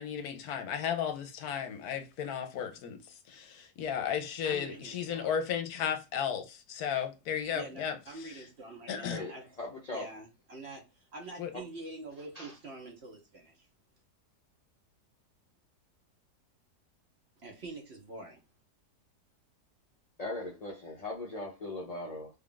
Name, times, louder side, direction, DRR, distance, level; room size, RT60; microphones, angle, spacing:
voice 1, 0.0-8.4 8.9-9.2 11.4-11.5, left 8 dB, 70° left, 1.1 m, -34 dB
voice 2, 4.4-5.4 7.5-9.5 9.9-13.7 17.4-18.4, right 2 dB, 50° right, 0.9 m, -46 dB
voice 3, 9.6-10.1 11.5-11.6 12.3-12.5 20.2-22.3, left 2 dB, 55° left, 0.4 m, -39 dB
3.4 x 2.4 x 3.7 m
omnidirectional pair, 1.7 m